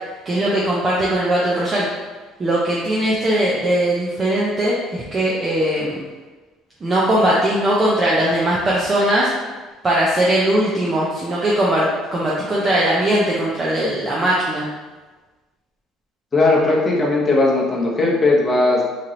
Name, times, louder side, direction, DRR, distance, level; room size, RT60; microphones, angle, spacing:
voice 1, 0.3-1.9 2.4-6.0 6.8-9.3 9.8-14.7, right 1 dB, 20° right, -6 dB, 0.5 m, -19 dB
voice 2, 16.3-18.8, left 2 dB, 20° left, -3 dB, 0.8 m, -17 dB
3.2 x 2.9 x 3.8 m, 1.3 s
cardioid pair, 150°, 0 cm